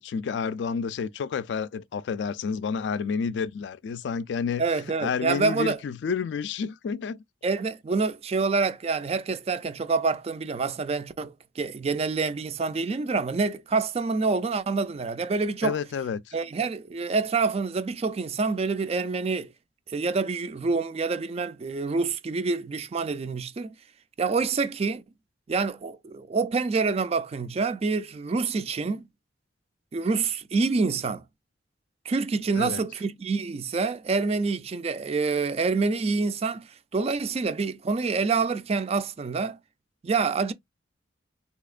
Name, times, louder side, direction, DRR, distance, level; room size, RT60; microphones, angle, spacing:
voice 1, 0.0-4.6 5.0-7.2 15.6-16.4 32.6-32.8, left 6 dB, 65° left, 0.3 m, -30 dB
voice 2, 4.6-5.8 7.4-15.8 16.3-19.5 19.9-23.7 24.2-25.0 25.5-29.1 29.9-31.2 32.1-39.6 40.0-40.5, right 4 dB, 35° right, 0.4 m, -27 dB
4.1 x 2.8 x 2.4 m
head